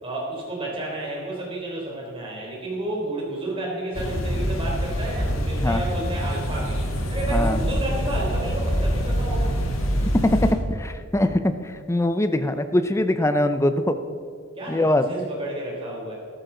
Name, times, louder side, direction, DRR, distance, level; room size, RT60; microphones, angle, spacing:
voice 1, 0.0-6.8 7.1-9.5 14.6-16.2, right 1 dB, 25° right, -2 dB, 3.6 m, -31 dB
sound 1, 3.9-10.5, equal, 85° left, 1.8 m, -25 dB
voice 2, 10.2-14.0 14.7-15.1, left 1 dB, 15° left, 9 dB, 0.6 m, -22 dB
14.0 x 12.0 x 3.9 m, 2.3 s
head